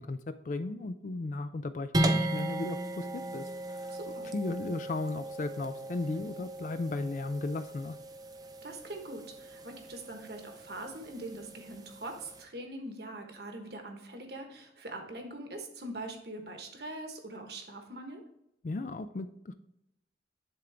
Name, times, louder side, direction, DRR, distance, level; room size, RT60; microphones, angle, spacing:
voice 1, 0.0-4.0 4.3-8.0 18.6-19.5, left 2 dB, 45° left, 10 dB, 0.4 m, -36 dB
sound 1, 1.9-12.4, right 1 dB, 20° right, 0.5 m, -36 dB
voice 2, 3.9-4.3 8.6-18.2, right 1 dB, 60° right, 4 dB, 1.2 m, -43 dB
10.5 x 3.8 x 3.4 m, 0.81 s
head